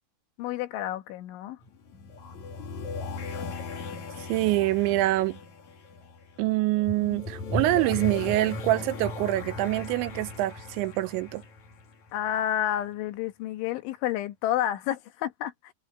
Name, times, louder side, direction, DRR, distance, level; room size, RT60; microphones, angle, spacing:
voice 1, 0.4-1.6 12.1-15.7, left 12 dB, 80° left, 3.8 m, -30 dB
sound 1, 1.6-12.4, left 3 dB, 45° left, 3.1 m, -37 dB
voice 2, 4.3-5.4 6.4-11.4, right 17 dB, 80° right, 2.9 m, -25 dB
omnidirectional pair, 5.4 m